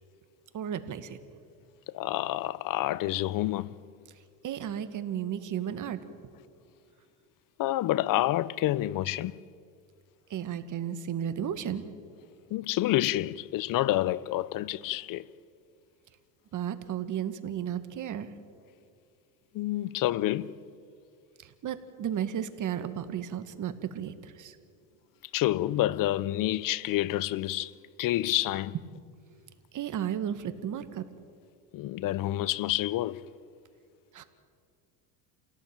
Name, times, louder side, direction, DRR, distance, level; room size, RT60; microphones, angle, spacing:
voice 1, 0.5-1.2 4.4-6.0 10.3-11.8 16.5-18.3 21.4-24.6 29.7-31.0 34.1-34.2, right 9 dB, 45° right, 2.0 m, -34 dB
voice 2, 1.9-3.7 7.6-9.4 12.5-15.3 19.5-20.6 25.3-27.7 28.0-28.8 31.7-33.2, left 15 dB, 50° left, 0.8 m, -28 dB
27.5 x 17.5 x 9.0 m
supercardioid pair, 100°, 43 cm